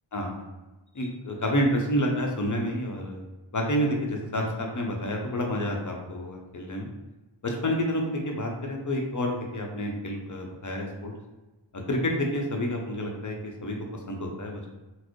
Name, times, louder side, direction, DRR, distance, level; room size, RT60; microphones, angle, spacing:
voice 1, 0.1-0.5 0.9-3.2 3.5-6.9 7.4-11.1 11.7-14.7, equal, 40° left, 1 dB, 0.7 m, -29 dB
4.1 x 2.0 x 3.0 m, 1.1 s
wide cardioid pair, 40°, 48 cm